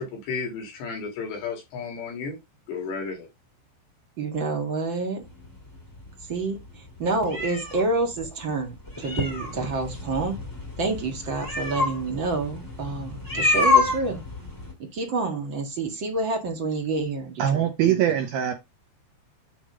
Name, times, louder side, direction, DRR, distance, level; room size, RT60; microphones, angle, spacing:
voice 1, 0.0-2.4 2.7-3.3, left 5 dB, 70° left, 3.9 m, -33 dB
voice 2, 4.2-5.2 6.3-10.4 10.8-14.2 14.8-18.0, right 3 dB, 40° right, 1.7 m, -28 dB
sound 1, 5.2-14.7, left 3 dB, 10° left, 1.0 m, -28 dB
voice 3, 17.4-18.5, right 10 dB, 75° right, 2.4 m, -22 dB
8.9 x 3.6 x 4.8 m
omnidirectional pair, 5.2 m